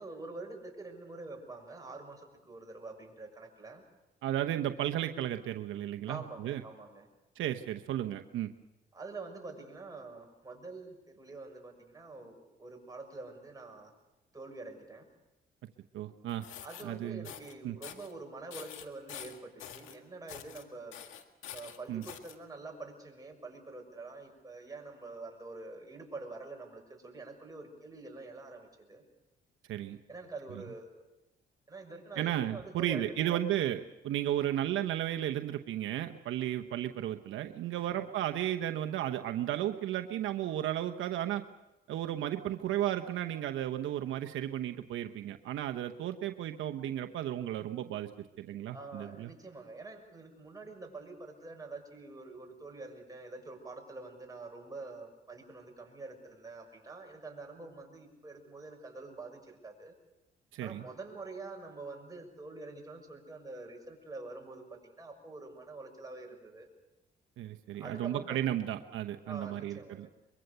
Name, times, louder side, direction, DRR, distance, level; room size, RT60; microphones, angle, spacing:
voice 1, 0.0-3.8 6.1-7.1 8.9-13.9 14.3-15.1 16.6-20.9 21.5-29.0 30.1-31.0 31.7-33.4 37.8-38.0 48.7-59.9 60.6-66.7 67.8-68.6 69.2-70.1, right 3 dB, 20° right, 1 dB, 6.4 m, -46 dB
voice 2, 4.2-6.6 7.4-8.5 15.9-16.5 16.8-17.3 17.6-17.8 21.9-22.0 29.7-30.0 32.2-41.4 41.9-49.3 60.5-60.9 67.4-70.1, right 12 dB, 80° right, 6 dB, 1.0 m, -34 dB
sound 1, 16.3-16.8 17.2-17.5 17.8-18.1 18.5-20.0 20.3-20.6 20.9-22.3, left 9 dB, 85° left, 1.9 m, -46 dB
24.0 x 22.5 x 6.8 m, 0.96 s
cardioid pair, 90°, 20 cm